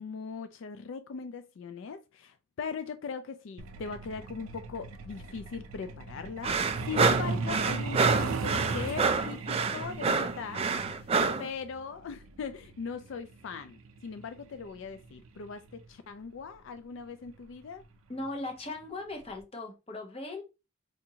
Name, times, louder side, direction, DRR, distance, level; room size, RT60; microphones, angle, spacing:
voice 1, 0.0-6.6 6.9-11.1 11.4-17.8, left 5 dB, 65° left, 0.3 m, -40 dB
Truck, 3.6-15.9 17.1-17.3 17.7-17.8 18.2-18.5 18.8-18.9 19.4-19.5, right 3 dB, 80° right, 0.5 m, -37 dB
sound 1, 6.4-11.5, right 4 dB, 30° right, 0.3 m, -27 dB
voice 2, 18.1-20.4, left 2 dB, 30° left, 0.7 m, -38 dB
4.8 x 2.5 x 2.8 m
head